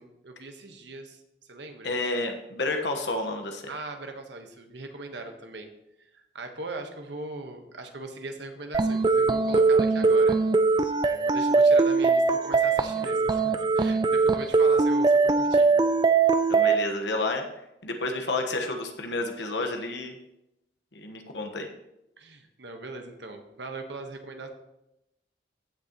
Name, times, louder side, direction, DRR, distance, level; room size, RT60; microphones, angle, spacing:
voice 1, 0.0-1.9 3.7-5.7 6.0-10.4 11.0-15.9 22.2-24.5, right 2 dB, 75° right, 5 dB, 1.2 m, -40 dB
voice 2, 1.8-3.6 16.5-17.4 17.8-20.2 20.9-21.7, left 2 dB, 75° left, 4 dB, 1.2 m, -30 dB
sound 1, 8.7-16.8, right 4 dB, 25° right, 0.3 m, -21 dB
15.0 x 6.5 x 3.0 m, 0.86 s
head